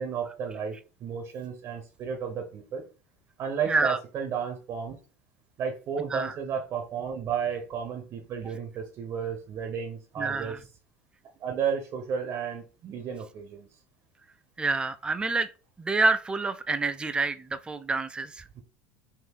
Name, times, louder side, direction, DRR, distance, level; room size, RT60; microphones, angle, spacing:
voice 1, 0.0-2.8 3.4-5.0 5.6-10.6 11.4-13.7 18.6-18.7, right 7 dB, 40° right, 0.8 m, -33 dB
voice 2, 3.7-4.0 6.1-6.3 10.2-10.6 14.6-15.5 15.8-18.6, right 3 dB, 10° right, 0.4 m, -27 dB
3.7 x 2.6 x 4.7 m
figure-of-eight pair, 75°, 7 cm